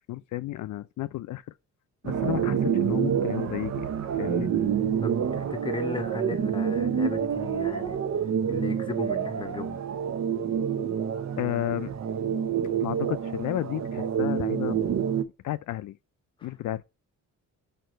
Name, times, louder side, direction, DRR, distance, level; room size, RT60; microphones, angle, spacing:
voice 1, 0.1-1.4 2.0-3.9 4.2-4.5 11.4-11.9 12.8-14.8 15.4-16.0 16.4-16.8, left 14 dB, 70° left, 0.5 m, -32 dB
sound 1, 2.0-15.2, right 8 dB, 60° right, 0.8 m, -28 dB
voice 2, 5.0-8.0 8.5-9.8 16.4-16.5, left 3 dB, 15° left, 0.8 m, -36 dB
5.2 x 4.6 x 5.0 m
cardioid pair, 150°, 31 cm